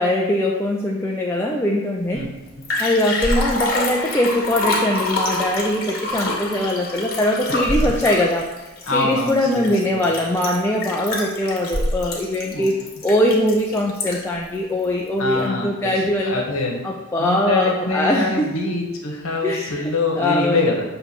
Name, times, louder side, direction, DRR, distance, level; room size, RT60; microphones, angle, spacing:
voice 1, 0.0-2.2 2.8-8.5 8.9-16.4 16.8-18.5 19.4-20.8, left 1 dB, 10° left, -2 dB, 0.5 m, -21 dB
Liquid, 2.2-2.3 2.5-14.4 14.8-14.9, left 2 dB, 45° left, 1.7 m, -26 dB
voice 2, 8.9-10.0 12.5-12.7 15.2-15.9 16.2-16.8 17.2-20.8, left 3 dB, 65° left, 0 dB, 1.4 m, -24 dB
7.0 x 3.3 x 6.2 m, 1.2 s
head